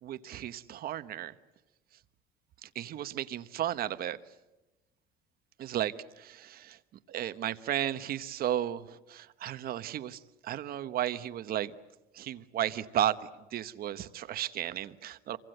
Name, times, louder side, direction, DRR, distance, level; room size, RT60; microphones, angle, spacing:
voice 1, 0.0-1.3 2.6-4.2 5.6-6.8 7.1-11.7 12.1-15.4, right 11 dB, 50° right, 13 dB, 1.1 m, -34 dB
28.0 x 24.5 x 7.8 m, 1.0 s
cardioid pair, 140°, 20 cm